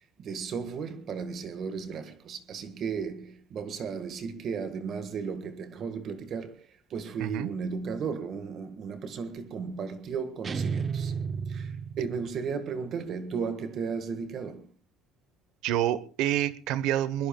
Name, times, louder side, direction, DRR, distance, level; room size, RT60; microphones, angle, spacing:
voice 1, 0.2-11.1 11.5-14.7, right 6 dB, 40° right, 1.7 m, -35 dB
sound 1, 10.4-12.5, right 6 dB, 25° right, 0.7 m, -32 dB
voice 2, 15.6-17.3, right 12 dB, 70° right, 1.1 m, -28 dB
22.5 x 21.5 x 2.3 m
cardioid pair, 165°, 0 cm